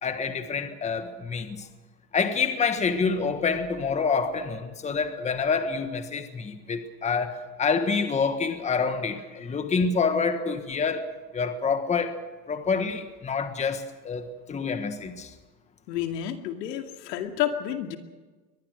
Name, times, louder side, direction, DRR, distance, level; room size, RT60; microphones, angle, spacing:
voice 1, 0.0-1.7 2.1-11.1 11.3-12.2 12.5-15.3, left 5 dB, 15° left, 1.4 m, -27 dB
voice 2, 15.9-18.0, left 11 dB, 80° left, 2.5 m, -30 dB
23.0 x 20.0 x 6.5 m
supercardioid pair, 140°, 48 cm